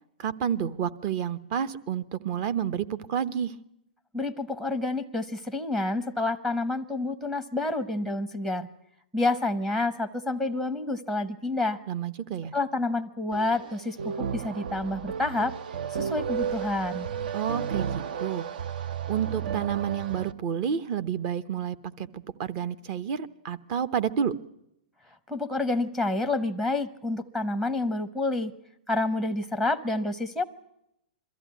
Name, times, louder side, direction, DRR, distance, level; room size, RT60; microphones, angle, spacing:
voice 1, 0.2-3.6 11.9-12.5 17.3-18.5 19.1-24.3, right 8 dB, 35° right, 14 dB, 0.9 m, -30 dB
voice 2, 4.1-8.7 9.1-11.8 12.5-15.5 15.9-17.1 25.3-28.5 28.9-30.4, left 2 dB, 5° right, 7 dB, 0.8 m, -28 dB
sound 1, 13.3-20.3, right 7 dB, 65° right, 0.8 m, -33 dB
22.5 x 14.0 x 9.4 m, 0.80 s
hypercardioid pair, 155°, 5 cm